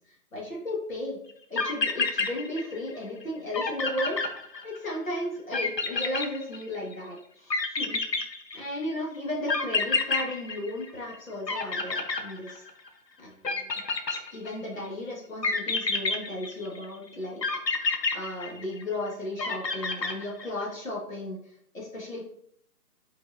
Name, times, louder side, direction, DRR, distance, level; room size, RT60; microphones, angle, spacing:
voice 1, 0.1-1.2 1.5-4.2 4.6-8.0 8.5-12.6 13.2-13.7 14.3-17.4 17.8-17.9 18.1-22.2, left 1 dB, 55° left, -4 dB, 2.3 m, -35 dB
sound 1, 1.3-1.4 1.6-2.9 3.2-3.3 3.5-5.0 5.5-6.9 7.5-8.8 9.5-11.2 11.5-12.9 13.4-14.7 15.4-16.8 17.4-18.9 19.4-20.6, left 4 dB, 90° left, 1.4 m, -29 dB
7.7 x 4.8 x 2.8 m, 0.68 s
figure-of-eight pair, 170°, 48 cm